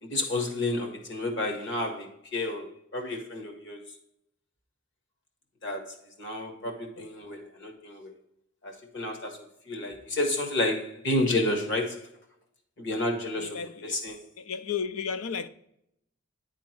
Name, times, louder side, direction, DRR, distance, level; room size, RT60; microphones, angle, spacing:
voice 1, 0.0-3.8 5.6-8.1 8.6-9.4 9.7-12.0 12.8-14.2, left 2 dB, 55° left, 1.6 m, -31 dB
voice 2, 13.4-13.9 14.5-15.5, left 6 dB, 75° left, 0.5 m, -33 dB
9.7 x 3.7 x 4.5 m
head